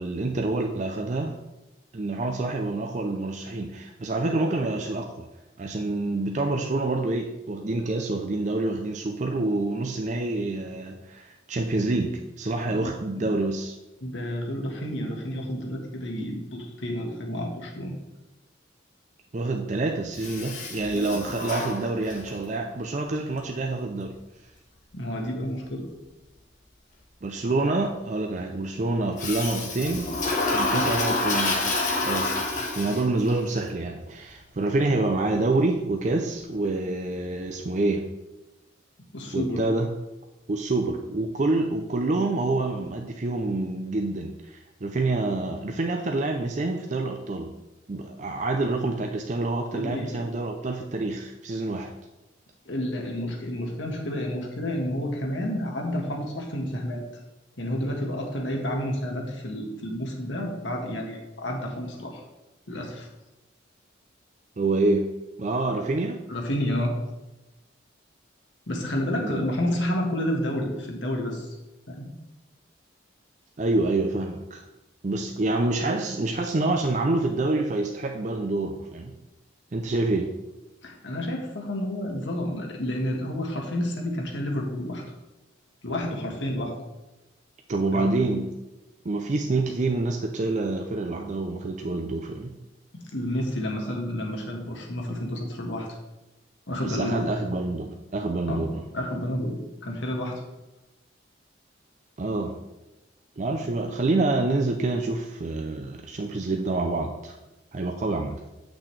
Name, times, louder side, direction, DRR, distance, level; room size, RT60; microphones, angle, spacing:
voice 1, 0.0-1.4 1.9-5.3 5.6-13.7 19.3-24.1 27.2-30.1 30.5-31.6 32.0-32.4 32.7-38.1 39.3-39.9 40.5-47.5 47.9-51.9 64.6-65.1 65.4-66.2 69.2-69.4 73.6-74.6 75.0-79.1 79.7-80.3 87.7-88.5 89.0-92.5 96.8-98.8 102.2-102.6 103.4-107.4 107.7-108.4, right 2 dB, 40° right, 3 dB, 0.5 m, -27 dB
voice 2, 12.7-13.2 14.0-17.9 24.9-25.9 39.1-39.6 49.7-50.3 52.6-57.0 57.6-62.2 62.7-63.1 66.3-66.9 68.7-71.6 71.9-72.1 80.8-85.0 85.8-86.7 87.9-88.2 92.9-95.9 96.7-97.3 98.4-98.6 98.9-100.4, left 1 dB, 70° left, 1 dB, 1.5 m, -30 dB
Toilet flush, 20.2-22.4 29.2-33.3, left 2 dB, 40° left, 1.3 m, -28 dB
8.6 x 6.1 x 3.3 m, 1.0 s
head